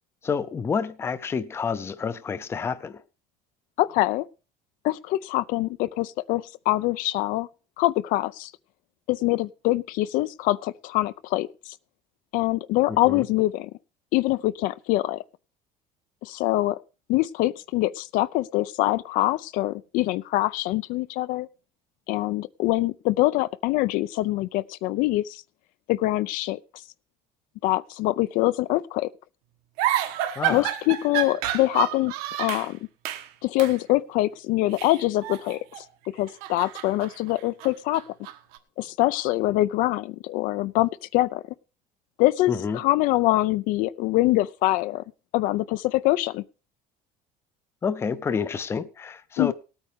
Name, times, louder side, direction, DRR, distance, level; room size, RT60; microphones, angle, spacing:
voice 1, 0.2-3.0 12.9-13.3 30.4-30.7 42.5-42.8 47.8-49.5, left 6 dB, 15° left, 0.5 m, -29 dB
voice 2, 3.8-4.3 4.8-7.5 7.8-8.5 9.1-11.7 12.3-13.7 14.1-15.2 16.2-16.8 17.1-21.5 22.1-25.4 25.9-26.6 27.6-29.1 30.5-32.1 32.4-32.8 33.4-35.8 36.1-38.0 38.8-41.4 42.2-45.0 45.3-46.4 49.4-49.5, left 17 dB, 65° left, 0.5 m, -24 dB
sound 1, 29.8-32.7 33.0-33.3 33.6-33.8 34.7-35.9 36.2-38.6, right 13 dB, 80° right, 1.5 m, -30 dB
19.0 x 8.9 x 3.5 m
cardioid pair, 175°, 15 cm